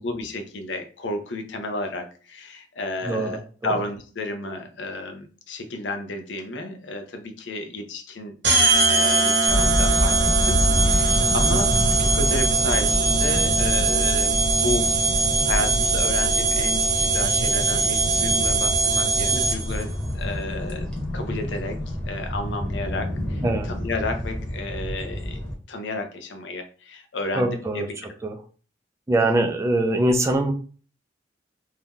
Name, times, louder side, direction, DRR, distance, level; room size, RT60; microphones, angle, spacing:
voice 1, 0.0-8.3 8.9-14.9 15.5-20.9 21.1-21.8 22.0-25.4 25.7-27.9 29.2-29.5, left 2 dB, 80° left, 6 dB, 0.6 m, -32 dB
voice 2, 3.0-3.8 11.5-11.6 23.4-23.7 27.4-28.4 29.1-30.5, right 1 dB, 15° right, 4 dB, 0.3 m, -23 dB
sound 1, 8.4-19.8, right 3 dB, 65° right, 0.8 m, -21 dB
sound 2, 9.5-25.5, equal, 5° left, 0.9 m, -27 dB
2.7 x 2.2 x 3.5 m, 0.39 s
head